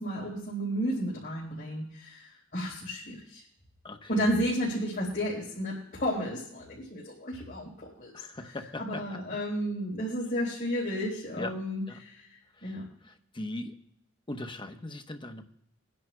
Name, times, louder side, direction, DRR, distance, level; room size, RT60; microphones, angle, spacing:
voice 1, 0.0-3.4 4.1-8.1 8.5-12.3 12.6-12.8, equal, 45° left, -6 dB, 3.9 m, -32 dB
voice 2, 8.1-9.0 11.4-11.5 11.9-12.0 12.6-12.7 13.3-13.7 14.3-15.4, left 2 dB, 25° left, 5 dB, 0.8 m, -39 dB
24.5 x 10.5 x 2.2 m, 0.73 s
head